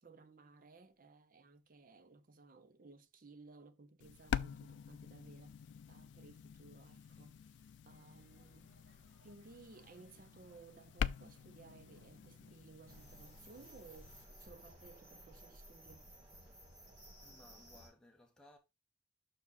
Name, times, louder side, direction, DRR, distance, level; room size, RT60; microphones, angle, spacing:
voice 1, 0.0-7.4 7.8-8.8 9.2-16.1, right 3 dB, 45° right, 0.7 m, -59 dB
sound 1, 4.0-14.3, left 7 dB, 65° left, 0.3 m, -45 dB
sound 2, 6.8-13.1, right 2 dB, 85° right, 1.3 m, -68 dB
sound 3, 12.9-17.9, right 1 dB, 30° right, 4.2 m, -57 dB
voice 2, 17.2-18.6, left 1 dB, 5° left, 1.3 m, -62 dB
6.1 x 4.9 x 4.0 m
head